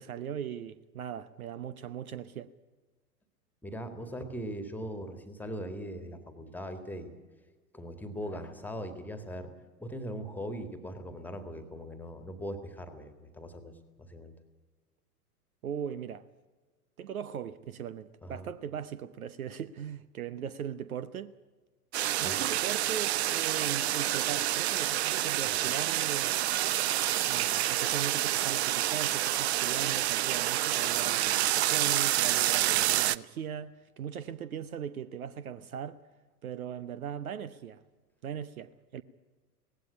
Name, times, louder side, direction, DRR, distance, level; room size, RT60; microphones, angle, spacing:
voice 1, 0.0-2.5 15.6-16.3 17.0-21.3 22.2-26.3 27.3-36.0 36.4-37.8 38.2-39.0, right 8 dB, 60° right, 0.9 m, -39 dB
voice 2, 3.6-7.1 7.7-9.5 9.8-13.7 14.0-14.3 18.2-18.5 22.2-22.4, equal, 5° left, 1.9 m, -40 dB
sound 1, 21.9-33.2, right 13 dB, 45° right, 0.5 m, -28 dB
18.0 x 16.0 x 9.9 m
figure-of-eight pair, 95°, 47 cm